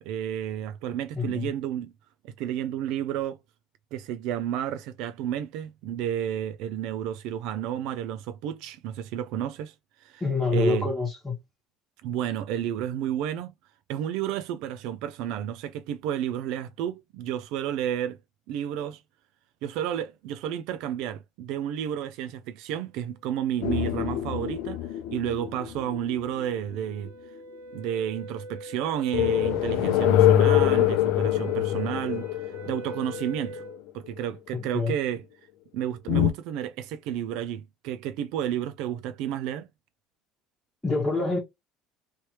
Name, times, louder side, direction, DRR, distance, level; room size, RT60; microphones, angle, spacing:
voice 1, 0.1-1.9 2.2-3.4 3.9-10.2 10.5-10.9 12.0-13.5 13.9-18.2 18.5-19.0 19.6-27.1 27.7-33.6 33.9-35.2 35.7-39.7, right 10 dB, 60° right, 0.3 m, -31 dB
voice 2, 1.2-1.5 10.2-11.4 34.5-34.9 40.8-41.4, left 3 dB, 5° left, 1.2 m, -26 dB
sound 1, 23.6-27.1 29.1-33.7 36.1-36.3, left 12 dB, 65° left, 0.6 m, -24 dB
sound 2, 23.9-33.8, right 1 dB, 85° right, 1.1 m, -45 dB
3.2 x 3.0 x 2.9 m
cardioid pair, 175°, 0 cm